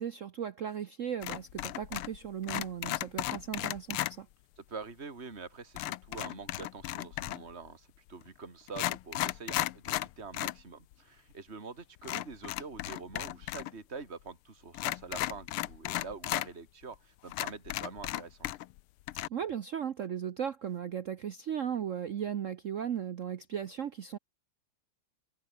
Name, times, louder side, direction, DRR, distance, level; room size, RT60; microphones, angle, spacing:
voice 1, 0.0-4.3 19.3-24.2, right 8 dB, 80° right, 0.7 m, -36 dB
sound 1, 1.2-2.2 2.4-4.1 5.8-7.5 8.2-8.3 8.7-10.6 10.9-11.0 12.0-13.7 14.0-14.1 14.7-16.5 16.9-17.0 17.3-18.8 19.1-19.3, left 15 dB, 80° left, 1.6 m, -35 dB
voice 2, 4.6-18.5, right 4 dB, 30° right, 3.2 m, -45 dB
omnidirectional pair, 2.4 m